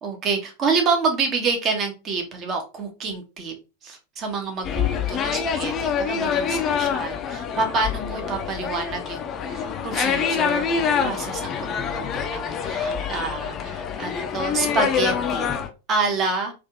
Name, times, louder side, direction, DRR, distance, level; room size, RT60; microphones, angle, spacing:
voice 1, 0.0-3.5 3.8-15.6 15.9-16.5, right 4 dB, 30° right, 1.2 m, -27 dB
sound 1, 4.6-15.7, left 7 dB, 30° left, 0.6 m, -26 dB
4.1 x 2.8 x 3.6 m
figure-of-eight pair, 90°, 0 cm